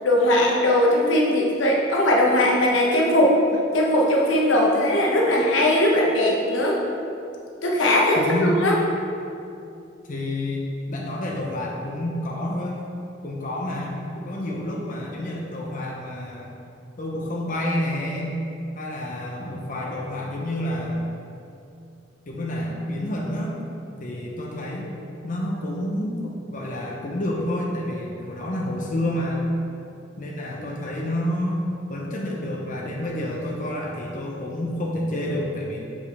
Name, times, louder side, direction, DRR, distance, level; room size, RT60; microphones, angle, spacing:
voice 1, 0.0-3.4 3.7-6.8 7.6-8.8, left 1 dB, 85° left, -2 dB, 1.0 m, -19 dB
voice 2, 8.2-8.6 10.0-12.8 13.2-14.0 14.2-16.6 17.0-18.4 18.7-21.0 22.3-23.6 24.0-24.9 25.2-29.5 30.2-31.6 31.9-35.8, left 1 dB, 45° left, -3 dB, 0.8 m, -29 dB
7.6 x 5.1 x 3.5 m, 2.6 s
head